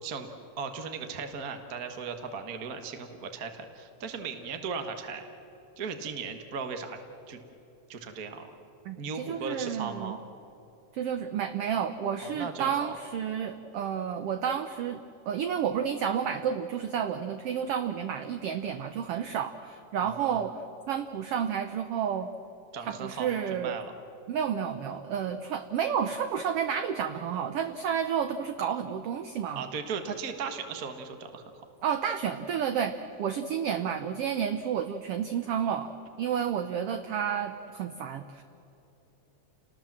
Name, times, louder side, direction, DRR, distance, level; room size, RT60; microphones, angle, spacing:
voice 1, 0.0-5.2 5.8-7.0 7.3-7.4 7.9-8.5 9.0-10.2 12.2-12.9 20.0-20.4 22.7-23.9 29.5-31.6, right 5 dB, 40° right, 6 dB, 1.4 m, -37 dB
voice 2, 8.8-10.2 10.9-20.6 20.9-22.3 22.8-23.7 24.3-29.6 31.8-35.9 36.2-38.4, right 8 dB, 70° right, 8 dB, 1.5 m, -31 dB
29.5 x 19.5 x 7.4 m, 2.9 s
omnidirectional pair, 3.5 m